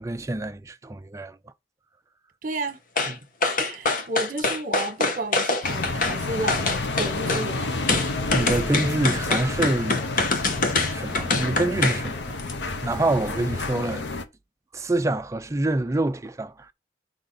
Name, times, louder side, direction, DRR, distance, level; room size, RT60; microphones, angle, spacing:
voice 1, 0.0-1.4 8.3-10.1 10.9-12.4 12.8-14.1 14.7-16.7, right 2 dB, 15° right, 0.4 m, -26 dB
voice 2, 2.4-2.8 3.0-3.2 3.6-7.8, right 2 dB, 50° right, 1.2 m, -32 dB
sound 1, 3.0-3.1 3.4-6.2 6.5-7.5 7.9-12.0 12.4-12.5, left 3 dB, 50° left, 0.9 m, -24 dB
sound 2, 5.6-14.2, left 2 dB, 85° left, 0.8 m, -30 dB
4.8 x 3.9 x 5.5 m
head